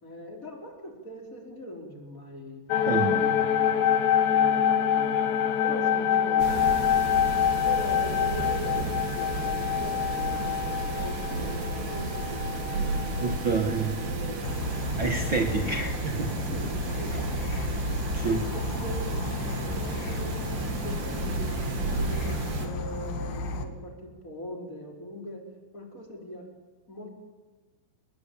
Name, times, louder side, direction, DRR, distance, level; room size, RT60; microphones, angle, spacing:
voice 1, 0.0-2.6 2.9-6.9 7.6-13.3 14.0-14.8 15.5-15.9 16.5-17.7 18.2-25.4 25.7-26.5 26.9-27.1, equal, 20° left, 2 dB, 4.8 m, -41 dB
sound 1, 2.7-14.1 14.5-14.6 14.8-15.6, left 9 dB, 85° left, 3.4 m, -26 dB
voice 2, 2.9-3.2 13.2-14.0 15.0-16.4 18.1-18.4, right 4 dB, 55° right, 6 dB, 1.3 m, -28 dB
sound 2, 6.4-22.7, right 3 dB, 80° right, 5.1 m, -33 dB
Insect / Frog, 14.4-23.6, left 3 dB, 65° left, 3.8 m, -34 dB
29.0 x 21.5 x 8.8 m, 1.4 s
omnidirectional pair, 4.8 m